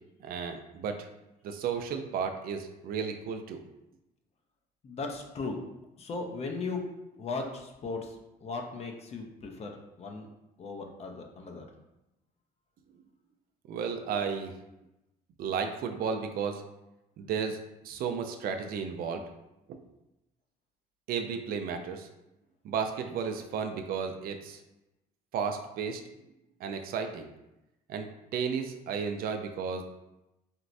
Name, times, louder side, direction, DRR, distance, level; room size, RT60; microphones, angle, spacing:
voice 1, 0.2-1.1 1.4-3.6 13.7-14.5 15.4-16.6 17.2-17.6 17.8-19.2 19.7-19.8 21.1-22.1 22.6-24.6 25.3-26.0 26.6-27.3 27.9-29.8, right 6 dB, 60° right, 6 dB, 0.4 m, -33 dB
voice 2, 4.8-5.6 6.0-6.8 7.2-9.7 10.0-10.3 10.6-11.6, left 3 dB, 40° left, 2 dB, 0.5 m, -37 dB
4.3 x 2.0 x 2.5 m, 0.93 s
cardioid pair, 110°, 17 cm